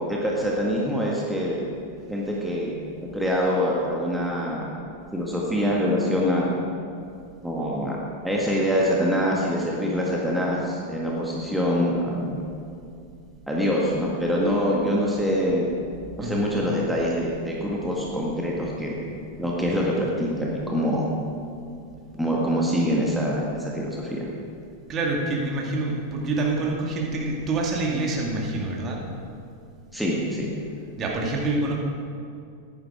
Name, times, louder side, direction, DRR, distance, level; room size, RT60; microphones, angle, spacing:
voice 1, 0.1-1.6 2.1-2.8 3.1-4.7 5.1-6.5 7.4-8.0 8.2-12.4 13.5-15.7 16.2-19.0 19.4-21.1 22.1-24.2 29.9-30.5, equal, ahead, -4 dB, 1.8 m, -25 dB
voice 2, 16.2-16.5 24.9-29.1 31.0-31.8, right 2 dB, 30° right, -2 dB, 2.3 m, -26 dB
15.0 x 11.0 x 4.9 m, 2.4 s
figure-of-eight pair, 90°, 0 cm